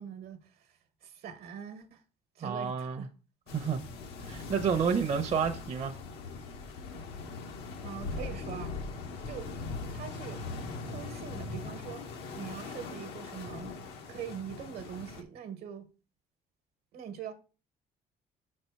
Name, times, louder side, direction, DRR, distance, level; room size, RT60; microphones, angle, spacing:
voice 1, 0.0-2.0 2.3-3.1 3.6-3.7 7.8-8.8 9.2-9.5 9.8-10.5 10.9-12.0 12.3-13.8 14.1-15.9 16.9-17.3, right 8 dB, 70° right, 1.1 m, -43 dB
voice 2, 2.4-3.1 3.5-3.8 4.2-5.9, right 6 dB, 40° right, 0.7 m, -30 dB
sound 1, 3.5-15.2, left 3 dB, 90° left, 1.1 m, -41 dB
6.0 x 4.3 x 4.5 m
cardioid pair, 110°, 17 cm